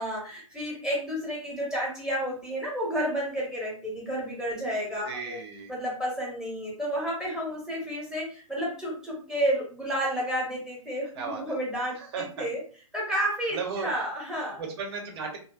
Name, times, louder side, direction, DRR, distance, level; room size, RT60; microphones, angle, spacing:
voice 1, 0.0-5.4 5.7-12.6 12.9-14.6, equal, 5° right, -4 dB, 0.8 m, -31 dB
voice 2, 5.0-5.7 11.1-11.4 12.0-12.4 13.5-13.9 14.6-15.4, right 5 dB, 45° right, 2 dB, 0.8 m, -35 dB
2.5 x 2.2 x 2.3 m, 0.41 s
figure-of-eight pair, 120°, 18 cm